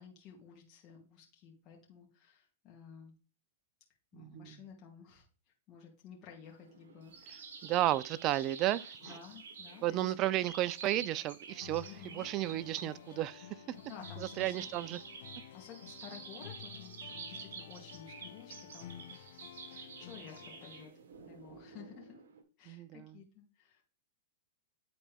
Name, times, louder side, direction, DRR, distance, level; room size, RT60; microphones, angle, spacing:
voice 1, 0.0-3.1 4.1-5.3 5.7-7.4 9.0-10.1 11.9-12.3 13.9-14.7 15.5-20.9 21.3-22.2 22.6-23.8, left 7 dB, 35° left, 2.2 m, -53 dB
voice 2, 4.1-4.6 7.3-9.1 9.8-13.8 14.2-15.0 22.7-23.2, right 14 dB, 40° right, 0.4 m, -33 dB
sound 1, 6.5-22.4, right 5 dB, 75° right, 1.4 m, -50 dB
sound 2, 11.5-20.9, left 12 dB, 60° left, 0.4 m, -52 dB
9.2 x 4.2 x 3.5 m
hypercardioid pair, 125°, 0 cm